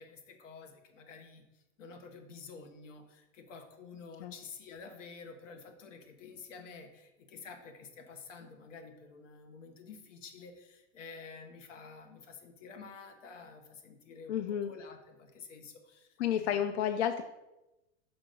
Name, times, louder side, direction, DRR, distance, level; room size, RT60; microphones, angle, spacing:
voice 1, 0.0-16.6, left 5 dB, 90° left, 5 dB, 1.3 m, -50 dB
voice 2, 14.3-14.7 16.2-17.2, left 9 dB, 65° left, 8 dB, 0.5 m, -31 dB
6.1 x 3.9 x 5.2 m, 0.99 s
supercardioid pair, 160°, 36 cm